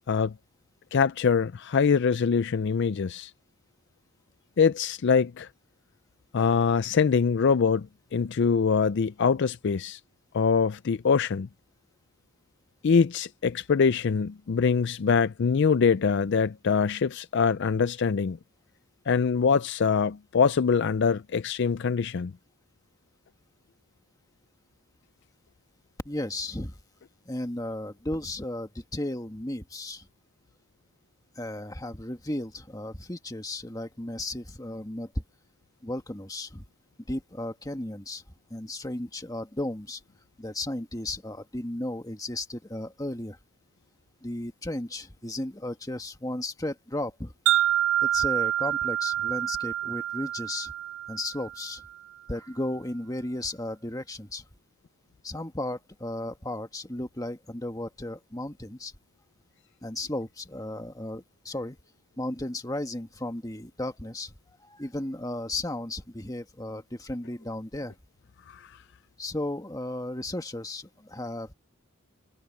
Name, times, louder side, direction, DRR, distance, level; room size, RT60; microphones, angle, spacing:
voice 1, 0.9-3.3 4.6-5.5 6.3-10.0 10.3-11.5 12.8-18.4 19.1-22.3 68.5-68.7, left 5 dB, 55° left, 0.4 m, -24 dB
voice 2, 26.0-26.7 27.3-30.0 31.4-35.1 35.8-36.6 37.1-38.2 38.5-40.0 40.4-43.3 44.2-47.3 48.1-50.7 51.1-51.8 52.3-54.4 55.2-58.9 59.8-61.8 62.2-64.3 64.8-67.9 69.2-71.5, left 1 dB, 15° left, 1.6 m, -34 dB
Wind chime, 47.5-51.7, right 12 dB, 65° right, 0.7 m, -27 dB
head